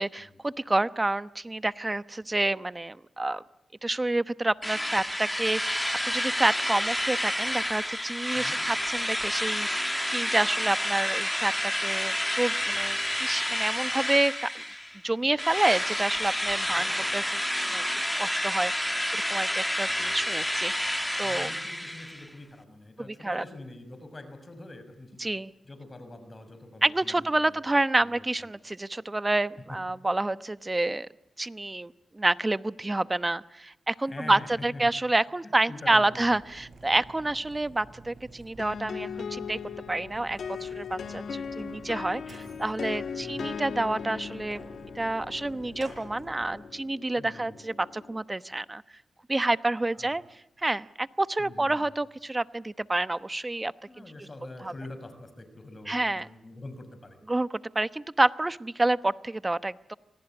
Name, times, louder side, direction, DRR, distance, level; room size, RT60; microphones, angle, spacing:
voice 1, 0.0-3.4 3.8-14.6 15.0-17.4 17.7-17.8 18.2-21.5 23.0-23.4 25.2-25.5 26.8-31.1 31.4-39.6 39.9-44.6 44.9-48.8 49.3-50.2 50.6-53.7 54.0-54.1 54.6-54.7 55.9-56.3 57.3-59.9, right 2 dB, 25° right, 16 dB, 0.9 m, -28 dB
Drill, 4.6-15.0 15.4-22.3, equal, 10° left, 1.7 m, -29 dB
voice 2, 8.3-8.6 16.7-17.1 21.2-25.3 25.6-27.6 28.0-28.1 29.7-29.8 34.0-34.9 35.4-36.3 43.2-43.6 47.2-47.6 49.9-50.2 51.4-51.8 53.9-57.2, left 2 dB, 40° left, 9 dB, 6.0 m, -45 dB
Mechanisms, 36.0-46.7, right 3 dB, 60° right, 7.8 m, -50 dB
sound 1, 38.6-48.2, left 6 dB, 75° left, 1.3 m, -39 dB
26.0 x 18.5 x 9.8 m, 0.86 s
supercardioid pair, 40°, 0 cm